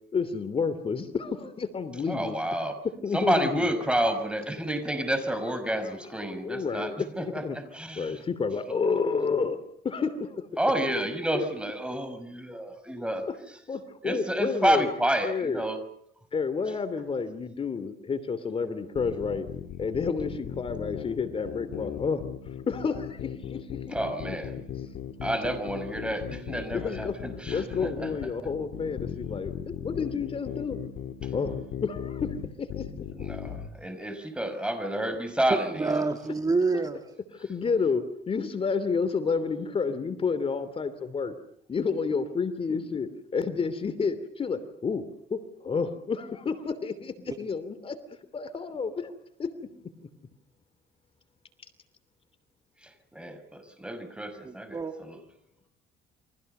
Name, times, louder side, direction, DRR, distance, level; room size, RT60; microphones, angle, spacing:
voice 1, 0.1-2.4 3.0-3.7 6.0-7.6 8.0-9.6 9.8-10.5 11.3-11.4 13.7-14.9 15.2-15.6 16.3-19.5 19.8-22.2 22.7-23.6 23.9-24.0 26.7-27.1 27.5-29.5 29.8-30.8 31.3-33.2 37.4-41.3 41.7-45.0 45.3-48.0 48.3-49.1 49.4-49.5, left 5 dB, 35° left, 11 dB, 2.9 m, -30 dB
voice 2, 2.1-2.8 3.1-8.2 8.7-8.8 10.6-13.3 14.0-15.8 23.9-24.5 25.2-28.1 33.2-36.0 52.8-55.2, right 1 dB, 5° right, 10 dB, 5.8 m, -30 dB
sound 1, 18.9-33.7, left 9 dB, 75° left, 3.7 m, -37 dB
voice 3, 35.5-37.0 47.3-47.4 54.4-54.9, right 3 dB, 20° right, 5 dB, 2.2 m, -28 dB
29.5 x 24.5 x 6.8 m, 0.69 s
cardioid pair, 110°, 17 cm